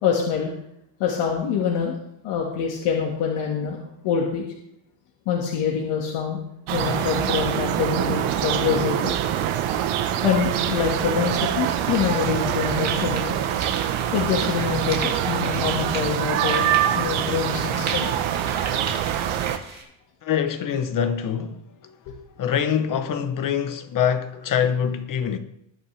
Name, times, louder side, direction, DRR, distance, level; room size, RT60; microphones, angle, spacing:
voice 1, 0.0-0.5 1.0-1.9 2.2-4.4 5.3-6.4 6.7-9.1 10.2-13.4 14.1-16.7 16.9-18.1 19.7-19.8 22.1-22.2, left 7 dB, 85° left, 2.2 m, -25 dB
sound 1, 6.7-19.6, right 10 dB, 70° right, 1.2 m, -24 dB
sound 2, 11.5-19.8, right 5 dB, 30° right, 2.6 m, -36 dB
voice 2, 20.2-21.6 21.8-21.9 22.4-25.4, left 8 dB, 40° left, 1.1 m, -24 dB
20.5 x 8.6 x 3.5 m
cardioid pair, 175°, 50 cm